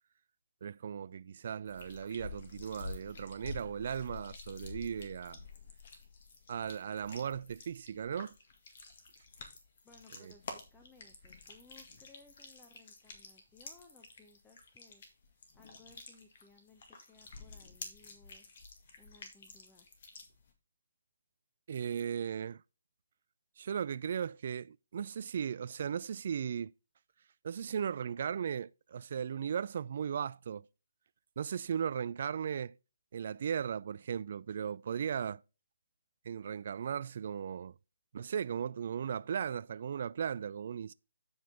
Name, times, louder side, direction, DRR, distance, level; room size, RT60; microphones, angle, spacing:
voice 1, 0.6-5.4 6.5-8.4 10.2-10.3 21.7-22.6 23.6-26.7 27.4-30.6 31.4-32.8 33.1-35.4 36.2-37.7 38.1-40.9, right 8 dB, 45° right, 0.3 m, -37 dB
sound 1, 1.7-20.5, left 4 dB, 45° left, 1.9 m, -50 dB
voice 2, 9.8-18.5 19.0-19.9, left 3 dB, 10° left, 0.9 m, -62 dB
9.5 x 5.3 x 3.8 m
figure-of-eight pair, 140°, 0 cm